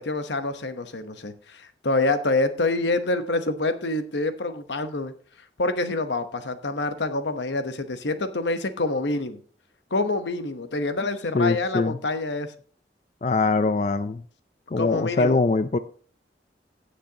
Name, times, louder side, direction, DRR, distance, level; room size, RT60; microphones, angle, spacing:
voice 1, 0.0-5.1 5.6-9.4 9.9-12.5 14.8-15.4, left 2 dB, 85° left, 9 dB, 1.0 m, -26 dB
voice 2, 11.3-12.0 13.2-14.2 14.7-15.8, left 3 dB, 40° left, 11 dB, 0.4 m, -22 dB
17.5 x 6.6 x 2.8 m, 0.43 s
head